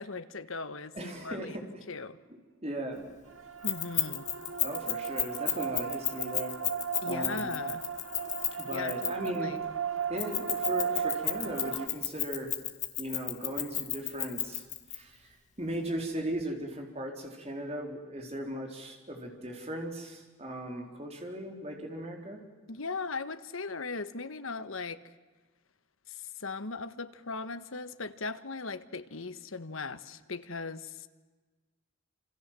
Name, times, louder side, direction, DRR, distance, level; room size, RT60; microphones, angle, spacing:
voice 1, 0.0-1.6 1.9-2.2 3.6-4.3 7.0-7.8 8.7-9.6 22.7-25.0 26.1-31.1, left 4 dB, 75° left, 12 dB, 1.3 m, -38 dB
voice 2, 0.9-1.7 2.6-3.0 4.6-6.5 7.1-7.5 8.5-9.6 10.1-12.5 13.0-14.6 14.9-22.4, right 1 dB, 30° right, 2 dB, 4.1 m, -37 dB
sound 1, 3.3-11.9, right 7 dB, 75° right, 1.7 m, -36 dB
Keys jangling, 3.6-9.4 10.2-15.0, left 12 dB, 35° left, 1.9 m, -32 dB
27.5 x 27.5 x 7.6 m, 1.3 s
head